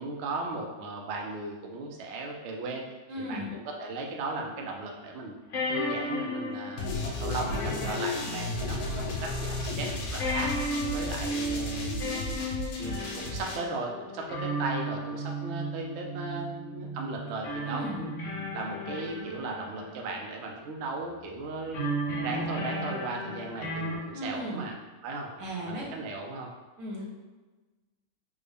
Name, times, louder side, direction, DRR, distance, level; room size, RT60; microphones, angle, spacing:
voice 1, 0.0-2.8 3.2-5.4 5.7-6.9 7.2-10.5 10.9-12.4 12.8-18.1 18.5-21.9 22.2-24.7 25.0-25.3 25.6-26.5, right 3 dB, 65° right, 0 dB, 0.7 m, -36 dB
voice 2, 3.1-3.5 17.7-18.0 24.1-24.6 25.4-25.9 26.8-27.0, equal, 85° right, -4 dB, 1.4 m, -36 dB
sound 1, 4.7-4.8 5.5-9.3 9.6-9.7 10.2-20.7 21.7-24.0, equal, 60° left, 1.1 m, -35 dB
sound 2, 6.8-13.6, left 2 dB, 90° left, 1.1 m, -33 dB
3.5 x 2.1 x 3.4 m, 1.2 s
omnidirectional pair, 1.5 m